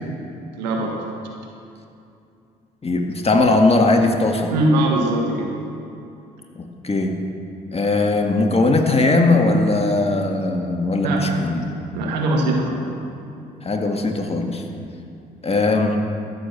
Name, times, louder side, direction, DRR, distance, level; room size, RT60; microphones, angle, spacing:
voice 1, 0.5-1.0 4.5-5.6 11.0-11.3 11.9-12.9, right 1 dB, 90° right, 1 dB, 1.5 m, -21 dB
voice 2, 2.8-4.5 6.6-7.2 7.7-11.7 13.6-14.6 15.4-16.0, left 2 dB, 30° left, 3 dB, 1.8 m, -19 dB
13.5 x 6.9 x 7.3 m, 2.6 s
hypercardioid pair, 50°, 21 cm